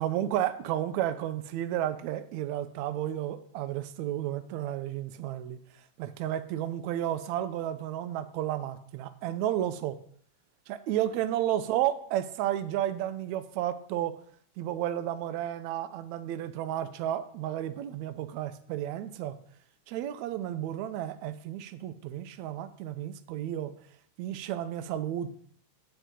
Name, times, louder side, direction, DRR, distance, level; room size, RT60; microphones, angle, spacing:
voice 1, 0.0-5.6 6.0-10.0 10.7-14.1 14.6-19.4 19.9-23.7 24.2-25.3, right 12 dB, 75° right, 12 dB, 1.8 m, -32 dB
12.5 x 9.1 x 3.8 m, 0.63 s
omnidirectional pair, 3.7 m